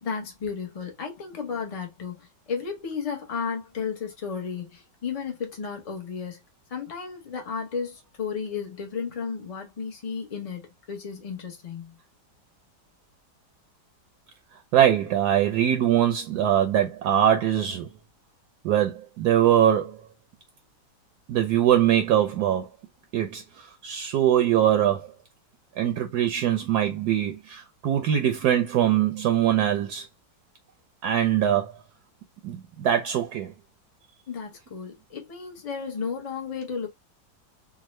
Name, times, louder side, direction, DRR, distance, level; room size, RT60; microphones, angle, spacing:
voice 1, 0.0-6.4 6.7-12.0 34.3-36.9, left 6 dB, 50° left, 0.4 m, -33 dB
voice 2, 14.7-17.9 18.6-20.0 21.3-22.7 23.1-25.1 25.8-30.1 31.0-31.7 32.4-33.5, right 10 dB, 70° right, 1.0 m, -22 dB
3.6 x 2.1 x 3.0 m
omnidirectional pair, 1.9 m